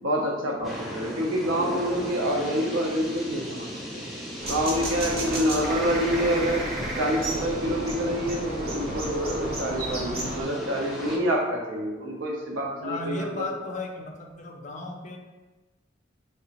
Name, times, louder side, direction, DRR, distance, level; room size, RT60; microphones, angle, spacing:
voice 1, 0.0-4.0 4.5-6.7 6.9-13.5, equal, 85° right, 0 dB, 0.6 m, -27 dB
sound 1, 0.6-11.2, equal, ahead, 0.6 m, -36 dB
sound 2, 4.4-10.4, right 1 dB, 50° right, 0.8 m, -33 dB
voice 2, 12.8-15.2, left 2 dB, 40° left, 3 dB, 0.4 m, -35 dB
3.3 x 2.8 x 2.8 m, 1.2 s
head